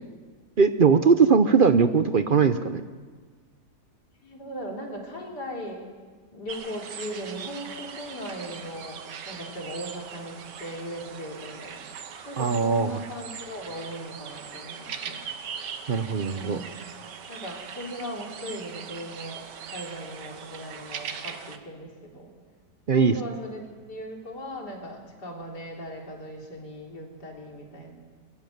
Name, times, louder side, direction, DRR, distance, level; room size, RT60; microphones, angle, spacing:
voice 1, 0.6-2.8 12.4-13.0 15.9-16.6 22.9-23.1, right 5 dB, 50° right, 11 dB, 0.6 m, -20 dB
voice 2, 4.2-5.9 6.3-9.0 9.3-11.8 12.3-15.2 16.3-16.9 17.3-19.4 19.7-22.3 22.9-23.6 23.9-27.9, equal, 70° left, 0 dB, 4.0 m, -38 dB
sound 1, 6.5-21.6, right 7 dB, 90° right, 1.8 m, -40 dB
22.0 x 14.5 x 9.3 m, 1.5 s
omnidirectional pair, 1.8 m